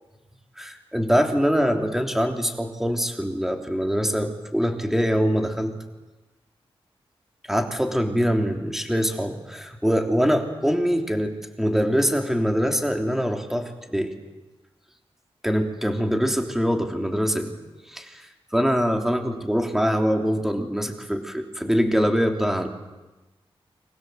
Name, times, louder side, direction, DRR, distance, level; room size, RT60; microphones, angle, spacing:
voice 1, 0.6-5.7 7.5-14.1 15.4-17.5 17.9-18.2 18.5-22.7, equal, 5° right, 4 dB, 3.3 m, -23 dB
29.5 x 25.0 x 8.0 m, 1.1 s
wide cardioid pair, 105°, 10 cm